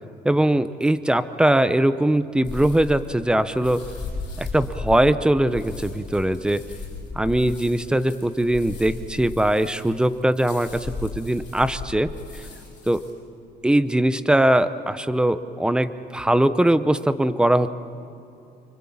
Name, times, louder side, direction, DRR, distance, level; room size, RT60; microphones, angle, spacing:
voice 1, 0.2-3.8 4.4-6.6 7.2-12.1 12.9-13.0 13.6-17.7, right 1 dB, 5° right, 12 dB, 0.7 m, -21 dB
sound 1, 2.4-13.1, left 3 dB, 25° left, 7.7 m, -36 dB
25.0 x 24.0 x 8.6 m, 2.7 s
cardioid pair, 155°, 18 cm